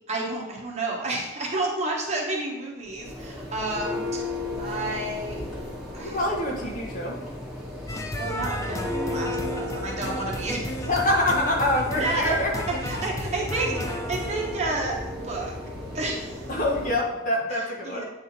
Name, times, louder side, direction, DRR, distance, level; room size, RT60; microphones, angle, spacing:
voice 1, 0.1-4.3 4.6-5.4 5.9-6.2 8.2-10.9 12.0-12.3 12.7-15.5 15.9-16.4 17.5-18.0, right 2 dB, 35° right, -2 dB, 1.3 m, -30 dB
Church bell, 2.8-17.1, left 1 dB, ahead, 2.1 m, -35 dB
voice 2, 6.0-7.2 10.9-12.5 16.5-18.0, left 1 dB, 40° left, -1 dB, 1.3 m, -25 dB
sound 1, 7.9-14.5, left 1 dB, 15° left, 0.4 m, -34 dB
8.6 x 3.7 x 4.3 m, 1.1 s
head